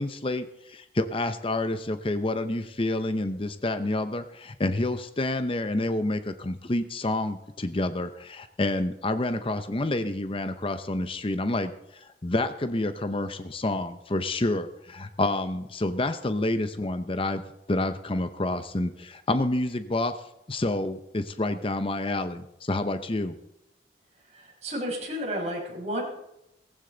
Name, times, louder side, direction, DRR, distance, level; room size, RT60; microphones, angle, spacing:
voice 1, 0.0-17.4 17.7-20.2 20.5-23.3, left 2 dB, 30° left, 10 dB, 0.7 m, -28 dB
voice 2, 24.3-26.0, equal, 40° right, -2 dB, 5.7 m, -32 dB
18.5 x 14.5 x 3.9 m, 0.84 s
head